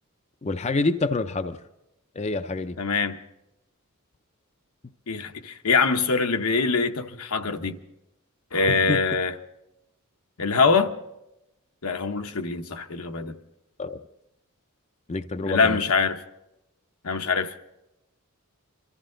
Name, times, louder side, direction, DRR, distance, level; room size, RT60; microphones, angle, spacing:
voice 1, 0.4-1.6 2.1-2.8 8.7-9.0 13.8-14.0 15.1-15.8, left 3 dB, 30° left, 0.5 m, -27 dB
voice 2, 2.8-3.2 5.1-7.8 8.5-9.3 10.4-10.9 11.8-13.4 15.5-16.2 17.0-17.5, left 4 dB, 85° left, 1.0 m, -23 dB
24.0 x 13.5 x 3.8 m
head